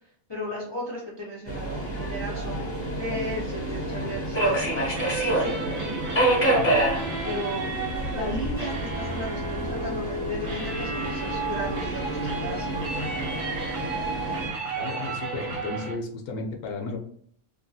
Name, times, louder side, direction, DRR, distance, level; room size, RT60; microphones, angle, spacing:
voice 1, 0.3-2.6 3.0-6.8 7.2-7.7 8.1-12.8, equal, 45° left, -6 dB, 0.3 m, -35 dB
Subway metro underground, 1.5-14.5, right 1 dB, 20° left, 1.5 m, -28 dB
sound 1, 4.8-15.9, right 3 dB, 75° right, 1.3 m, -33 dB
voice 2, 14.8-17.0, left 3 dB, 85° left, 3 dB, 1.1 m, -34 dB
3.0 x 2.3 x 2.6 m, 0.62 s
omnidirectional pair, 1.6 m